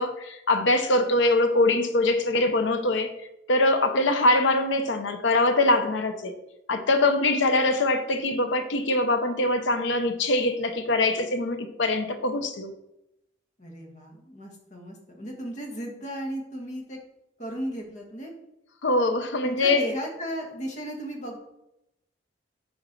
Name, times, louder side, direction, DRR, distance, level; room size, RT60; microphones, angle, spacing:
voice 1, 0.0-3.1 3.5-6.3 6.7-12.7 18.8-19.8, left 2 dB, 75° left, 7 dB, 0.8 m, -23 dB
voice 2, 13.6-17.0 17.4-18.3 19.4-21.4, equal, 40° left, 0 dB, 1.5 m, -35 dB
6.4 x 5.3 x 4.5 m, 0.86 s
head